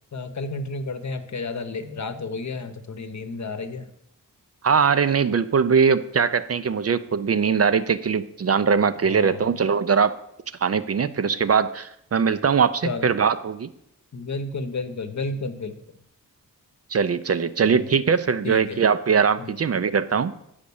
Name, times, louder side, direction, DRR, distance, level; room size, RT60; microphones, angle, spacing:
voice 1, 0.1-3.9 9.0-9.5 12.8-13.1 14.1-15.8 17.6-17.9 18.4-18.8 19.4-19.5, left 3 dB, 55° left, 9 dB, 0.9 m, -32 dB
voice 2, 4.6-10.1 10.6-13.7 16.9-20.3, right 6 dB, 45° right, 12 dB, 0.5 m, -21 dB
8.2 x 5.1 x 6.9 m, 0.78 s
wide cardioid pair, 80°, 34 cm